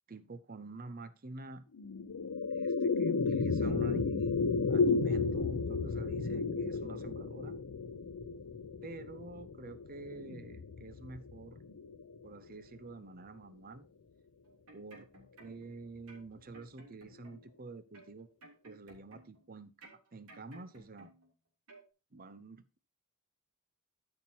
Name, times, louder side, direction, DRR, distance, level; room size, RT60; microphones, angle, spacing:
voice 1, 0.1-1.6 2.5-7.6 8.8-11.6 12.2-13.9 14.7-15.1 15.4-18.3 18.6-21.1 22.1-22.8, right 2 dB, 40° right, 0.7 m, -48 dB
sound 1, 1.7-12.3, left 4 dB, 85° left, 0.6 m, -33 dB
sound 2, 14.4-15.7 16.1-17.6 17.9-19.5 19.8-21.3 21.7-21.9, right 2 dB, 80° right, 3.2 m, -57 dB
13.5 x 5.8 x 2.9 m
head